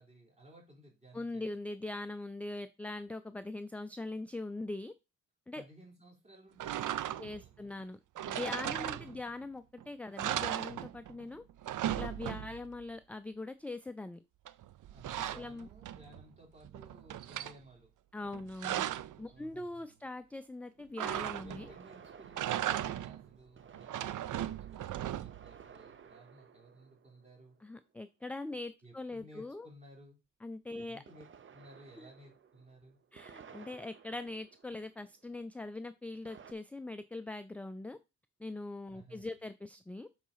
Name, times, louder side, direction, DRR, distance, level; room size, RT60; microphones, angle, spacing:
voice 1, 0.0-1.5 5.5-7.8 8.6-9.2 14.9-17.9 19.3-20.0 21.4-27.6 28.8-30.2 30.7-31.2 31.5-33.0 38.9-39.4, right 1 dB, 20° right, -1 dB, 3.7 m, -57 dB
voice 2, 1.1-4.9 5.5-5.6 7.2-8.0 8.3-11.4 11.9-14.2 15.3-15.7 18.1-18.9 19.2-21.7 27.6-29.7 30.4-31.0 32.0-32.1 33.1-38.0 38.4-40.1, left 2 dB, 5° left, 11 dB, 0.3 m, -42 dB
sound 1, 6.6-7.5 8.2-9.4 9.8-9.9 10.2-11.2 11.5-12.8 14.5-16.2 16.6-17.6 18.2-19.2 21.0-21.8 22.2-23.3 23.7-25.5, right 12 dB, 80° right, 0.5 m, -37 dB
sound 2, 17.5-17.6 21.4-27.9 31.1-35.3 36.2-36.5, right 7 dB, 40° right, 0.7 m, -56 dB
7.3 x 4.1 x 5.6 m, 0.26 s
wide cardioid pair, 150°, 30 cm